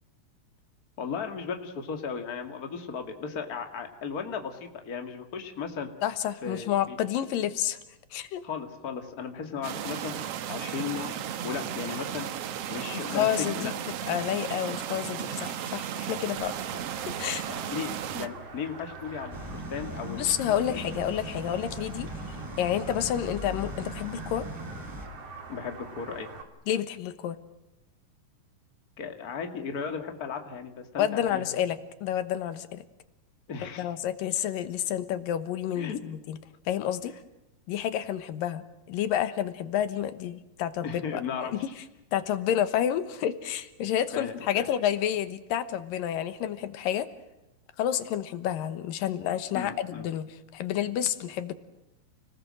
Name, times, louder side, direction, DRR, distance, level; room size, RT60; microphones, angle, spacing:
voice 1, 1.0-5.9 6.4-7.0 8.4-10.2 10.5-12.3 12.7-13.7 16.7-16.8 17.5-21.0 25.5-26.3 29.0-31.5 33.5-33.9 35.8-36.0 40.8-41.8 44.1-44.7 49.5-50.1, left 6 dB, 30° left, 5 dB, 2.2 m, -36 dB
voice 2, 6.0-7.8 8.1-8.4 12.9-13.7 14.1-16.6 17.1-17.4 20.1-24.5 26.7-27.4 31.0-32.8 33.8-36.4 36.7-37.1 37.7-41.2 41.5-41.6 42.1-47.1 47.8-50.3 50.5-51.5, left 10 dB, 85° left, 12 dB, 2.9 m, -29 dB
sound 1, 9.6-18.3, right 10 dB, 65° right, 1.7 m, -35 dB
sound 2, 16.4-26.4, right 4 dB, 45° right, 3.4 m, -44 dB
sound 3, 19.3-25.1, equal, 5° right, 3.7 m, -39 dB
29.5 x 19.5 x 7.7 m, 0.96 s
omnidirectional pair, 3.9 m